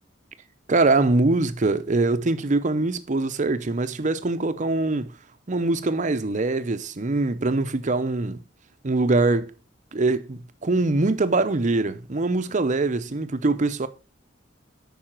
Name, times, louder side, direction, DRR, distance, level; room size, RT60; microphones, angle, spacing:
voice 1, 0.7-5.1 5.5-8.4 8.8-9.5 9.9-13.9, right 2 dB, 40° right, 0.6 m, -23 dB
8.8 x 5.5 x 4.4 m
head